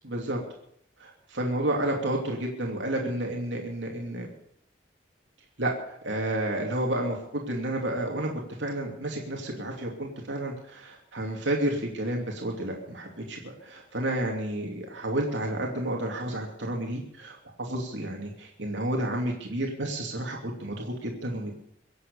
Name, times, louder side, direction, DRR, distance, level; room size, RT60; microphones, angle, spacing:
voice 1, 0.0-0.4 1.0-4.3 5.6-8.3 8.6-21.6, right 1 dB, 85° right, 0 dB, 2.7 m, -31 dB
24.0 x 8.0 x 6.9 m, 0.71 s
head